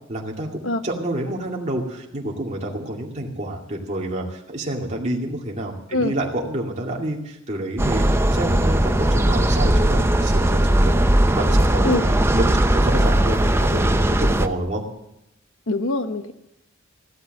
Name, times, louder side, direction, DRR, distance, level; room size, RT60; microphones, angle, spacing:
voice 1, 0.1-11.0 11.3-14.8, right 1 dB, 35° right, -1 dB, 2.3 m, -28 dB
sound 1, 7.8-14.5, right 1 dB, 10° right, 0.6 m, -18 dB
voice 2, 15.7-16.3, left 2 dB, 85° left, 9 dB, 1.1 m, -23 dB
15.0 x 12.5 x 6.5 m, 0.83 s
head